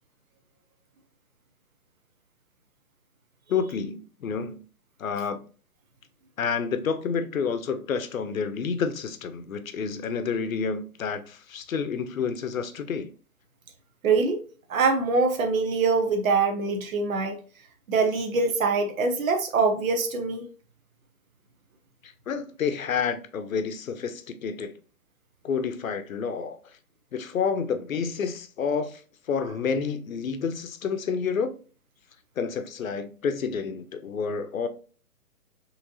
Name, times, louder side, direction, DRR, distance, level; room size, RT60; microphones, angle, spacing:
voice 1, 3.5-4.7 5.0-5.4 6.4-13.1 22.0-24.7 25.4-26.6 27.1-29.0 29.3-31.6 32.4-34.7, left 6 dB, 65° left, 0.7 m, -29 dB
voice 2, 14.0-14.4 14.7-17.4 17.9-20.5, right 4 dB, 60° right, 1.0 m, -24 dB
4.9 x 3.2 x 2.6 m
hypercardioid pair, 150°, 45 cm